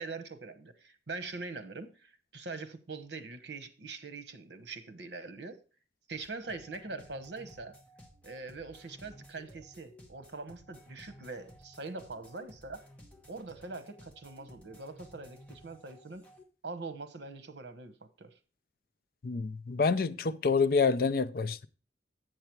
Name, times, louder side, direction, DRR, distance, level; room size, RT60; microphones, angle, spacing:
voice 1, 0.0-5.6 6.1-7.7 8.2-12.8 13.3-16.2 16.6-18.3, right 3 dB, 70° right, 1.0 m, -43 dB
sound 1, 6.1-16.4, equal, 10° left, 1.2 m, -56 dB
voice 2, 19.2-21.7, left 4 dB, 55° left, 0.4 m, -27 dB
7.8 x 6.7 x 4.5 m
head